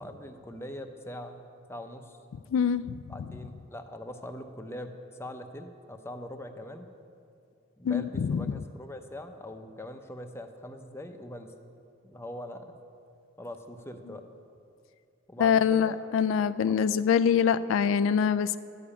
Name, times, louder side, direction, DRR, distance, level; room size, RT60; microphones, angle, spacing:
voice 1, 0.0-1.4 1.7-2.2 3.1-4.9 5.2-6.9 7.8-11.5 12.0-12.7 13.4-14.3 15.3-16.2, left 1 dB, 15° left, 6 dB, 0.7 m, -42 dB
voice 2, 2.5-3.0 7.8-8.6 15.4-18.6, left 7 dB, 75° left, 14 dB, 0.3 m, -24 dB
12.0 x 6.9 x 8.5 m, 2.5 s
head